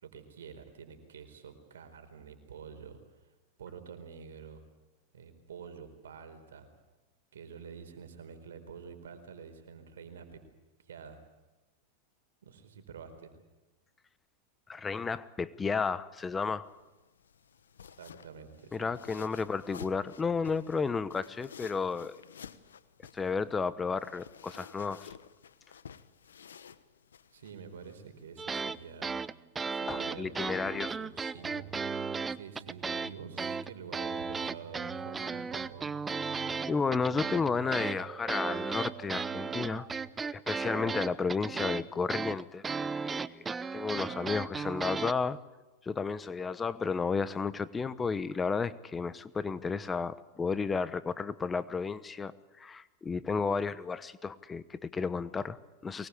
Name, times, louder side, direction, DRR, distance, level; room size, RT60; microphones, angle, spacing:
voice 1, 0.0-3.0 3.6-4.6 5.1-6.7 7.3-10.4 10.8-11.2 12.4-13.4 17.9-18.9 27.3-29.2 29.7-31.8 32.3-35.9 41.3-41.8 44.0-44.8, right 6 dB, 85° right, 8 dB, 4.4 m, -48 dB
voice 2, 14.7-16.7 18.7-22.2 23.1-25.1 29.9-30.9 36.7-39.9 40.3-43.4 43.7-45.4 45.8-56.1, left 5 dB, 20° left, 16 dB, 1.0 m, -32 dB
sound 1, 16.6-29.3, left 7 dB, 90° left, 1.2 m, -53 dB
sound 2, 28.4-28.8 29.0-33.1 33.4-45.1, right 5 dB, 15° right, 0.8 m, -35 dB
sound 3, 31.4-40.1, right 10 dB, 40° right, 2.0 m, -49 dB
23.5 x 20.0 x 8.6 m, 1.1 s
hypercardioid pair, 110°, 0 cm